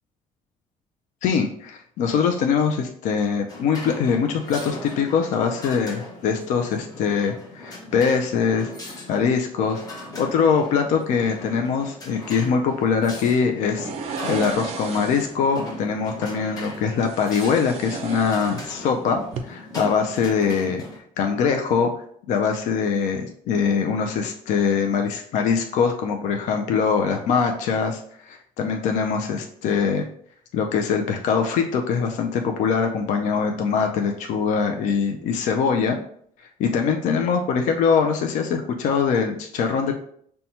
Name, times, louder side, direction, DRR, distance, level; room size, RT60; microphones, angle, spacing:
voice 1, 1.2-20.8 21.2-21.9 22.3-30.1 30.5-36.0 36.6-39.9, left 6 dB, 60° left, 3 dB, 0.4 m, -23 dB
sound 1, 3.5-21.0, left 2 dB, 25° left, 0.8 m, -39 dB
sound 2, 13.8-15.4 17.0-19.0 19.2-19.4, right 5 dB, 45° right, 0.4 m, -34 dB
5.4 x 2.2 x 2.8 m, 0.63 s
cardioid pair, 170°, 14 cm